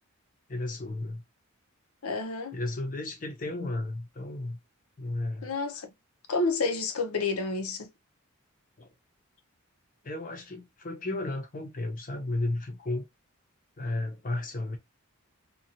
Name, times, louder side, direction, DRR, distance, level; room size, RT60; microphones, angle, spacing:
voice 1, 0.5-1.2 2.5-4.6 5.0-5.5 8.8-8.9 10.0-13.1 13.8-14.8, left 2 dB, 35° left, 0.6 m, -33 dB
voice 2, 2.0-2.6 5.4-5.9 6.3-7.9, left 3 dB, 85° left, 0.7 m, -29 dB
2.6 x 2.3 x 2.8 m
head